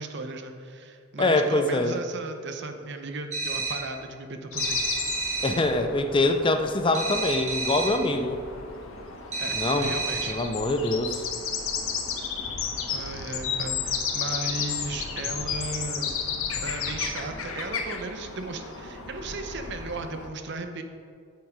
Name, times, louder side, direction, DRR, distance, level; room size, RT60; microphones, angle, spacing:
voice 1, 0.0-4.8 9.4-10.4 12.9-16.2 16.6-20.8, right 3 dB, 60° right, 7 dB, 0.8 m, -36 dB
voice 2, 1.2-2.0 5.4-8.4 9.5-9.9 10.3-11.3, left 2 dB, 25° left, 8 dB, 0.5 m, -24 dB
sound 1, 3.3-4.0 4.6-5.7 6.9-8.1 9.3-10.5, right 3 dB, 35° right, 1.6 m, -30 dB
sound 2, 4.5-20.3, left 6 dB, 85° left, 1.1 m, -33 dB
8.5 x 7.8 x 4.9 m, 2.2 s
head